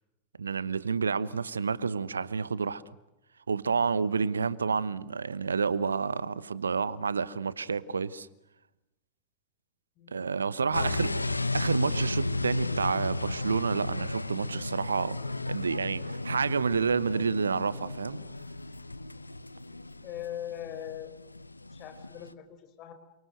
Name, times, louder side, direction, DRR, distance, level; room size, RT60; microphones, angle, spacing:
voice 1, 0.4-2.8 3.5-8.3 10.1-11.1 11.5-15.2 15.5-18.2, right 5 dB, 75° right, 1.0 m, -29 dB
voice 2, 10.6-11.4 20.0-21.1 21.7-22.9, left 11 dB, 40° left, 4.6 m, -41 dB
sound 1, 10.7-22.3, left 2 dB, 85° left, 1.0 m, -34 dB
29.0 x 26.0 x 7.9 m
figure-of-eight pair, 90°, 0 cm